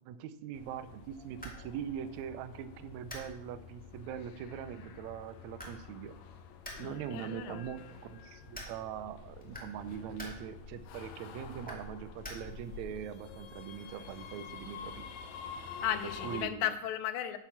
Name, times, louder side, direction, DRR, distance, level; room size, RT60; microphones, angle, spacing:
voice 1, 0.1-6.1 6.8-15.1 16.2-16.6, right 9 dB, 90° right, 12 dB, 1.6 m, -42 dB
sound 1, 0.5-16.5, left 6 dB, 70° left, 1.8 m, -48 dB
sound 2, 1.0-12.9, equal, 5° left, 1.5 m, -52 dB
voice 2, 6.7-7.7 15.8-17.4, left 11 dB, 85° left, 10 dB, 2.5 m, -35 dB
10.0 x 7.1 x 5.7 m, 0.80 s
omnidirectional pair, 4.1 m